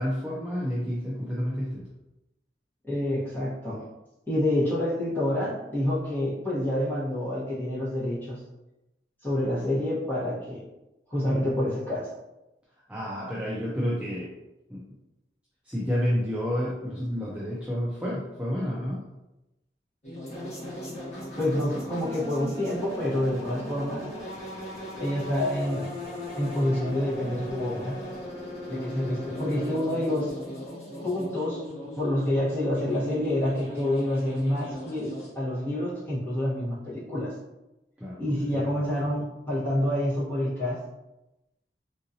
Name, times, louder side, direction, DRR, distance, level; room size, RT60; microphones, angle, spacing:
voice 1, 0.0-1.9 12.9-14.3 14.7-14.8 15.6-19.0 38.0-38.8, equal, 5° right, -6 dB, 0.4 m, -30 dB
voice 2, 2.9-3.8 4.3-8.4 9.2-10.6 11.1-12.1 21.4-24.0 25.0-25.9 26.4-28.0 28.7-30.3 31.0-31.6 32.0-37.3 38.2-40.8, left 1 dB, 10° left, -8 dB, 1.2 m, -28 dB
sound 1, 20.0-35.3, equal, 40° left, 1.0 m, -38 dB
3.7 x 2.6 x 2.7 m, 0.96 s
head